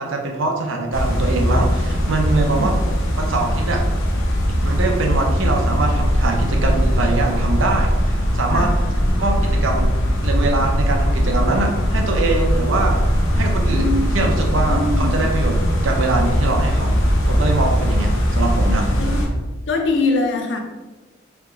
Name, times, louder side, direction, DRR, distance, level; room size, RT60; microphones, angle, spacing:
voice 1, 0.0-2.8 3.1-3.9 4.6-8.7 9.2-10.0 10.2-13.0 13.3-15.6 15.8-18.9, right 3 dB, 80° right, 2 dB, 0.7 m, -23 dB
sound 1, 0.9-19.3, equal, 90° left, 0.9 m, -19 dB
voice 2, 13.7-14.3 14.7-15.2 19.0-19.3 19.7-20.6, left 3 dB, 60° left, 4 dB, 0.6 m, -23 dB
3.5 x 2.9 x 3.6 m, 1.2 s
head